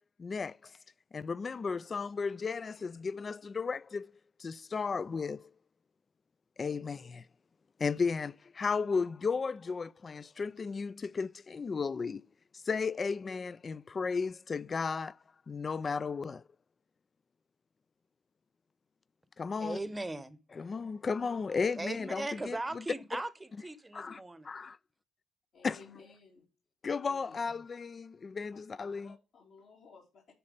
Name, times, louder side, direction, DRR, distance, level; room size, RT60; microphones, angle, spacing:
voice 1, 0.2-0.7 1.1-4.1 4.4-5.5 6.6-7.2 7.8-12.2 12.5-15.2 15.5-16.4 19.4-19.8 20.6-22.8 23.9-24.2 24.4-24.8 25.6-25.8 26.8-29.1, left 5 dB, 35° left, 0.4 m, -34 dB
voice 2, 19.6-20.4 21.8-24.5, right 2 dB, 15° right, 0.9 m, -38 dB
voice 3, 25.5-26.4 26.9-27.4 28.5-30.3, left 4 dB, 70° left, 3.1 m, -57 dB
10.0 x 4.3 x 5.1 m
cardioid pair, 90°, 0 cm